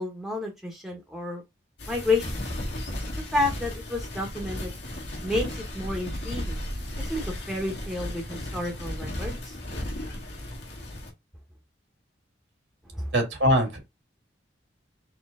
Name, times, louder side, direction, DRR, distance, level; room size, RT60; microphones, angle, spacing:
voice 1, 0.0-1.4 1.9-2.4 3.3-4.7 5.2-6.6 7.0-9.5 12.9-13.1, left 2 dB, ahead, 1.0 m, -30 dB
sound 1, 1.8-11.1, left 1 dB, 65° left, 1.6 m, -35 dB
voice 2, 13.1-13.8, equal, 80° right, 1.9 m, -22 dB
4.2 x 3.1 x 3.6 m
head